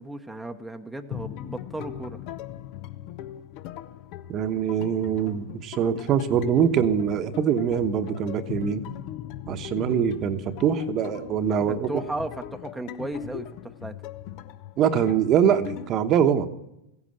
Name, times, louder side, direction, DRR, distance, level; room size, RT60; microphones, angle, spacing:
voice 1, 0.0-2.2 11.9-13.9, right 2 dB, 5° right, 4 dB, 0.9 m, -35 dB
sound 1, 1.1-15.9, left 11 dB, 50° left, 0.8 m, -39 dB
voice 2, 4.3-8.8 9.5-12.0 14.8-16.5, right 8 dB, 40° right, 9 dB, 1.1 m, -23 dB
15.0 x 9.7 x 7.7 m, 0.88 s
hypercardioid pair, 115°, 0 cm